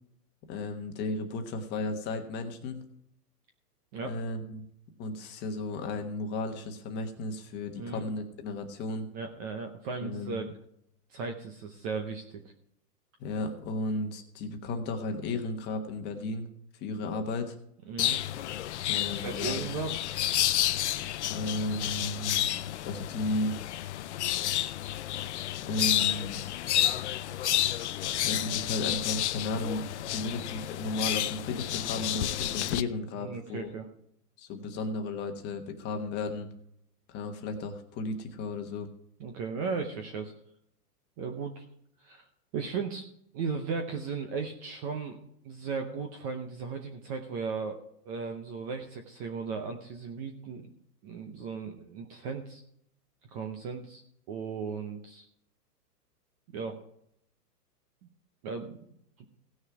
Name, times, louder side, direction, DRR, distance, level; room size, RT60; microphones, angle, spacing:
voice 1, 0.5-2.8 4.0-4.6 5.0-9.1 10.0-10.5 13.2-16.5 16.8-17.6 18.9-19.6 21.3-22.4 22.8-23.5 25.6-26.4 28.2-29.8 30.1-33.7 34.4-36.5 37.1-38.9, left 2 dB, 20° left, 4 dB, 1.2 m, -34 dB
voice 2, 9.1-10.6 11.1-12.5 17.9-18.2 19.2-19.9 33.2-33.9 39.2-40.3 41.2-41.6 42.0-42.3 42.5-43.0 43.3-45.2 45.4-47.8 48.1-50.7 51.0-52.6 53.2-54.0 54.3-55.3 56.5-56.8 58.4-58.8, right 5 dB, 25° right, 5 dB, 0.7 m, -36 dB
sound 1, 18.0-32.8, left 12 dB, 50° left, 0.5 m, -30 dB
16.5 x 6.4 x 4.8 m, 0.72 s
hypercardioid pair, 150°, 48 cm